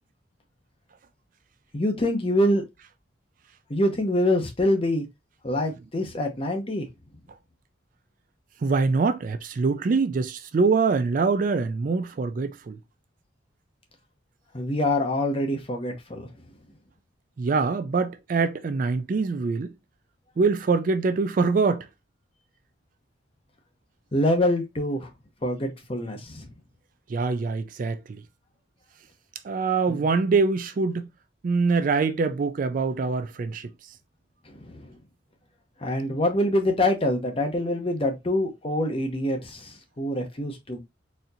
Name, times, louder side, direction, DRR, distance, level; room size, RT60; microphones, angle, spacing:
voice 1, 1.7-2.6 3.7-5.0 5.4-6.8 14.5-16.3 24.1-25.1 25.4-26.5 29.9-30.1 34.5-35.0 35.8-40.8, left 1 dB, 30° left, 0.8 m, -25 dB
voice 2, 8.6-12.8 17.4-19.7 20.4-21.9 27.1-28.2 29.4-31.1 31.4-33.7, right 4 dB, 45° right, 0.3 m, -24 dB
4.2 x 2.6 x 2.7 m
head